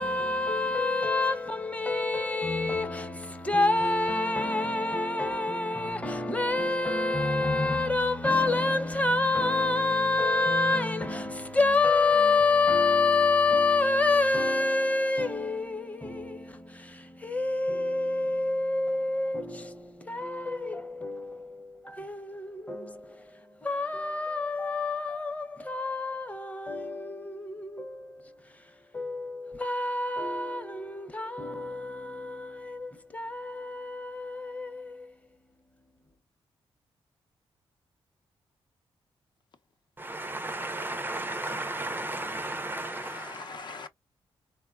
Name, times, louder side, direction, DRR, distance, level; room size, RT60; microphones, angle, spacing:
voice 1, 0.0-35.1, left 3 dB, 15° left, 0.7 m, -28 dB
voice 2, 40.0-43.5, right 2 dB, 20° right, 0.4 m, -34 dB
voice 3, 42.7-43.9, left 4 dB, 50° left, 0.6 m, -42 dB
3.7 x 2.1 x 2.3 m
cardioid pair, 90°, 10 cm